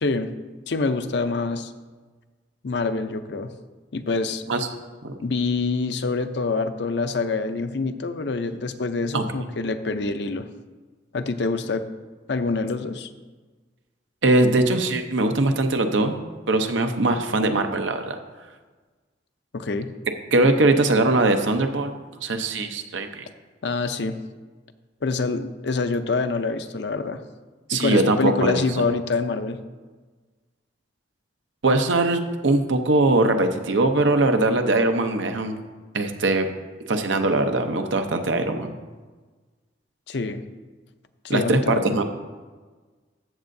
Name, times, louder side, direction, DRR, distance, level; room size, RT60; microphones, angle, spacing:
voice 1, 0.0-0.3 0.7-1.7 2.6-3.5 3.9-4.4 5.2-10.5 11.1-11.8 12.3-13.1 19.5-19.9 23.6-24.2 25.0-27.2 27.7-29.6 40.1-40.4 41.2-42.0, left 3 dB, 65° left, 9 dB, 0.5 m, -26 dB
voice 2, 14.2-16.2 16.5-18.2 20.3-23.3 27.7-28.8 31.6-35.6 35.9-36.5 36.9-38.7 41.3-42.0, right 2 dB, 85° right, 6 dB, 0.8 m, -21 dB
14.0 x 7.5 x 2.7 m, 1.4 s
head